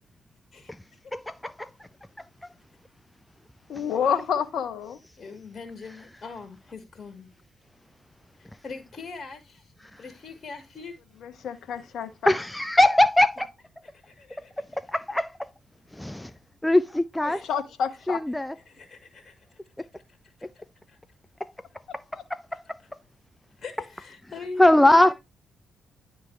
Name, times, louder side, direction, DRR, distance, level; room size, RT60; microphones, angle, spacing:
voice 1, 3.7-5.0 11.2-12.3 17.2-18.2, left 7 dB, 65° left, 1.0 m, -29 dB
voice 2, 5.2-7.3 8.4-9.7 10.0-11.0 11.7-11.9 13.8-14.6 17.3-17.5 18.7-21.0 22.5-22.6 23.6-25.1, left 4 dB, 45° left, 1.6 m, -42 dB
voice 3, 12.3-13.5 14.6-15.5 15.9-16.3 16.6-17.4 18.1-18.5 19.8-19.9 21.4-21.5 22.3-22.8 24.6-25.1, left 1 dB, 10° left, 0.4 m, -21 dB
10.5 x 3.6 x 3.1 m
hypercardioid pair, 45°, 0 cm